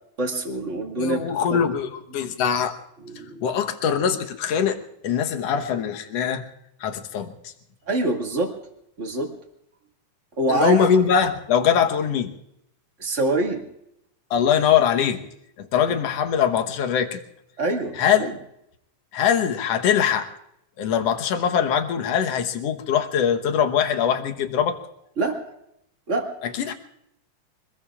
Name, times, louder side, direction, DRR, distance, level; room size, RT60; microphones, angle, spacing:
voice 1, 0.2-1.6 2.1-2.2 3.0-3.4 7.9-8.5 9.0-9.3 10.4-10.8 13.0-13.6 15.8-15.9 17.6-18.3 25.2-25.4 26.1-26.3, right 2 dB, 25° right, 1 dB, 2.1 m, -25 dB
voice 2, 1.0-2.8 3.4-4.8 5.0-6.4 6.8-7.5 10.5-12.3 14.3-15.2 15.6-17.2 18.0-18.2 19.1-20.3 20.8-24.8 26.4-26.7, left 8 dB, 60° left, 5 dB, 2.0 m, -22 dB
25.0 x 21.0 x 2.4 m, 0.78 s
omnidirectional pair, 3.6 m